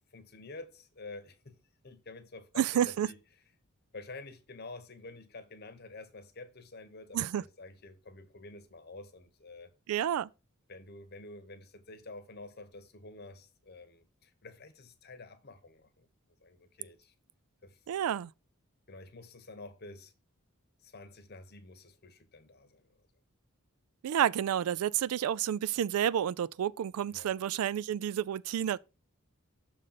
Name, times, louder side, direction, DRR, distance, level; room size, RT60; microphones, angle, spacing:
voice 1, 0.1-1.6 1.8-3.2 3.9-9.7 10.7-16.1 16.4-17.1 17.6-17.8 18.9-20.1 20.8-22.9 27.1-27.3, left 2 dB, 45° left, 0.9 m, -49 dB
voice 2, 2.6-3.1 7.1-7.4 9.9-10.3 17.9-18.3 24.0-28.8, right 10 dB, 80° right, 0.3 m, -30 dB
6.5 x 3.8 x 5.7 m
head